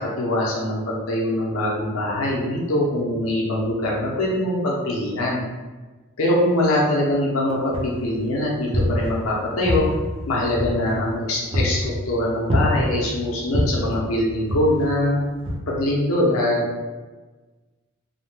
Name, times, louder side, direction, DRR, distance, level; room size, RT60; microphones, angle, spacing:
voice 1, 0.0-5.4 6.2-9.9 10.3-15.2 15.7-16.6, left 1 dB, 70° left, -4 dB, 0.6 m, -23 dB
sound 1, 7.7-8.2 8.6-9.4 9.7-11.1 11.5-12.0 12.5-13.1 13.5-14.0 14.5-15.0 15.5-15.6, left 1 dB, 25° right, 0.5 m, -24 dB
2.7 x 2.1 x 3.1 m, 1.3 s
head